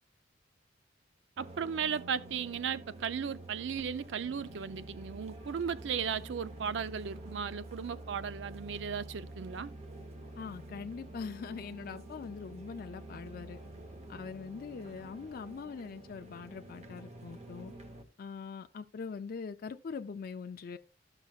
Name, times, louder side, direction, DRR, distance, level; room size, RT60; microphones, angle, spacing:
sound 1, 1.4-18.0, right 1 dB, 35° right, 0.9 m, -48 dB
voice 1, 1.4-9.7, right 7 dB, 70° right, 0.4 m, -36 dB
voice 2, 10.4-13.6 14.1-17.7 18.2-20.8, left 5 dB, 50° left, 0.4 m, -42 dB
13.0 x 5.8 x 2.3 m
head